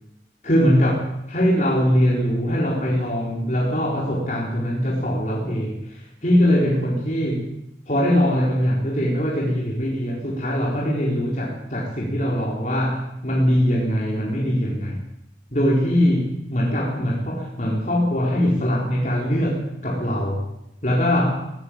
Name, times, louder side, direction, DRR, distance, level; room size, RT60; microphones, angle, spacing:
voice 1, 0.4-7.5 7.9-15.0 15.5-20.4 20.8-21.3, equal, 40° left, -3 dB, 4.4 m, -22 dB
20.0 x 17.5 x 8.8 m, 0.85 s
head